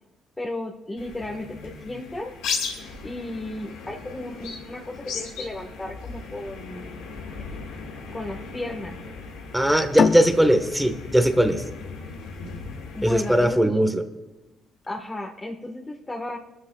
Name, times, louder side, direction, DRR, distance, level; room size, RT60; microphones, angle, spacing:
voice 1, 0.4-2.3 3.0-7.1 8.1-9.0 12.9-13.8 14.9-16.4, left 1 dB, 20° left, -1 dB, 1.7 m, -34 dB
sound 1, 1.0-13.5, left 4 dB, 85° left, 2.1 m, -37 dB
voice 2, 9.5-11.6 13.0-14.0, equal, 5° right, 7 dB, 1.6 m, -20 dB
sound 2, 10.0-13.2, left 6 dB, 55° left, 0.7 m, -27 dB
22.5 x 13.0 x 2.5 m, 1.1 s
supercardioid pair, 65°, 0 cm